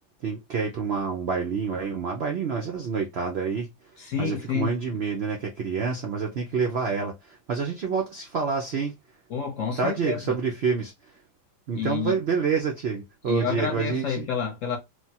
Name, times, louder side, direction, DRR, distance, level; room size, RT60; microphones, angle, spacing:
voice 1, 0.2-3.7 4.2-8.9 9.8-10.9 11.7-14.3, right 5 dB, 85° right, 0.5 m, -28 dB
voice 2, 4.0-5.0 9.3-10.4 11.7-12.2 13.3-14.8, left 7 dB, 60° left, 1.0 m, -29 dB
3.2 x 2.2 x 2.7 m
omnidirectional pair, 1.8 m